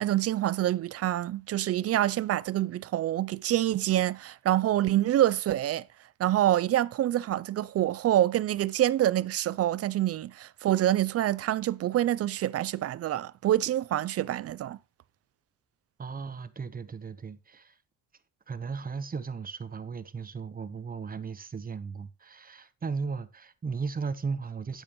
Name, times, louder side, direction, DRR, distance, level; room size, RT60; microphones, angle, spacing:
voice 1, 0.0-5.9 6.2-14.8, right 13 dB, 50° right, 0.4 m, -26 dB
voice 2, 16.0-17.8 18.5-24.8, right 5 dB, 30° right, 1.0 m, -36 dB
9.2 x 8.7 x 3.0 m
cardioid pair, 90°, 30 cm